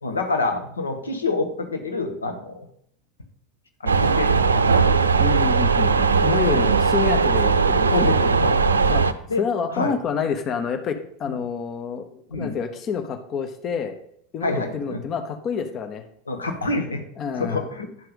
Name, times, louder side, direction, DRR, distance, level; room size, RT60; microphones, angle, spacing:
voice 1, 0.0-2.7 3.8-4.9 7.9-8.6 9.3-9.4 9.7-9.9 12.3-12.5 14.4-15.0 16.3-17.0 17.4-17.9, left 3 dB, 80° left, 5 dB, 1.2 m, -27 dB
sound 1, 3.9-9.1, right 5 dB, 80° right, 0.5 m, -19 dB
voice 2, 5.2-8.2 8.9-9.0 9.4-13.9 14.3-16.0 17.2-17.7, left 6 dB, 35° left, 7 dB, 1.0 m, -28 dB
11.0 x 5.7 x 5.3 m, 0.70 s
figure-of-eight pair, 80°, 0 cm